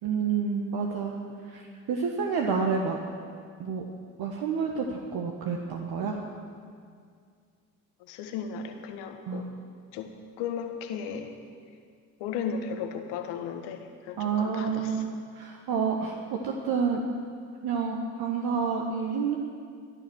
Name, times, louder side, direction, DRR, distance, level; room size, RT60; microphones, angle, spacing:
voice 1, 0.0-1.1 1.4-1.6 1.9-3.0 3.6-3.8 4.2-6.2 9.3-9.4 14.2-17.0 17.6-19.4, right 5 dB, 60° right, 1 dB, 1.6 m, -29 dB
voice 2, 8.0-9.5 9.9-11.4 12.2-15.1, left 6 dB, 75° left, 5 dB, 1.6 m, -35 dB
14.0 x 11.0 x 6.4 m, 2.2 s
hypercardioid pair, 65°, 42 cm